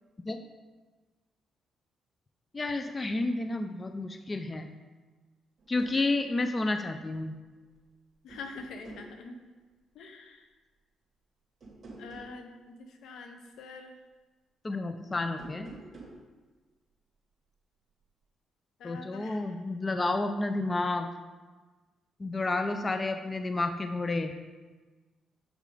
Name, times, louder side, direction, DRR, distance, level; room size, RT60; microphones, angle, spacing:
voice 1, 2.5-4.7 5.7-7.4 14.6-15.7 18.8-21.1 22.2-24.3, left 2 dB, 25° left, 7 dB, 0.5 m, -30 dB
sound 1, 5.6-6.0 7.6-7.9 8.3-9.1 11.6-12.4 15.3-16.2, right 2 dB, 40° right, 2.6 m, -48 dB
voice 2, 8.2-9.4 9.9-10.5 12.0-14.0 18.8-19.5, left 3 dB, 75° left, 6 dB, 0.9 m, -45 dB
7.4 x 6.4 x 3.8 m, 1.3 s
cardioid pair, 90°, 0 cm